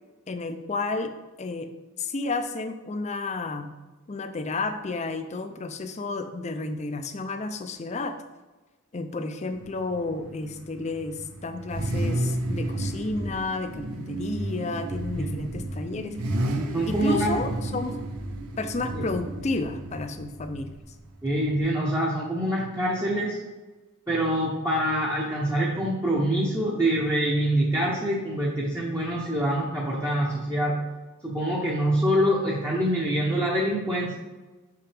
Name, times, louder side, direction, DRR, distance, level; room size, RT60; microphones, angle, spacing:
voice 1, 0.3-1.7 2.0-3.7 4.1-8.2 8.9-16.2 16.9-18.0 18.6-20.7, left 3 dB, 30° left, 8 dB, 0.5 m, -31 dB
Car / Idling / Accelerating revving vroom, 9.5-21.6, right 1 dB, 80° right, 0.8 m, -32 dB
voice 2, 15.2-15.5 16.7-17.3 18.9-19.0 21.2-23.4 24.1-30.8 31.2-34.2, right 1 dB, 15° right, -4 dB, 0.8 m, -25 dB
6.1 x 5.7 x 3.4 m, 1.2 s
head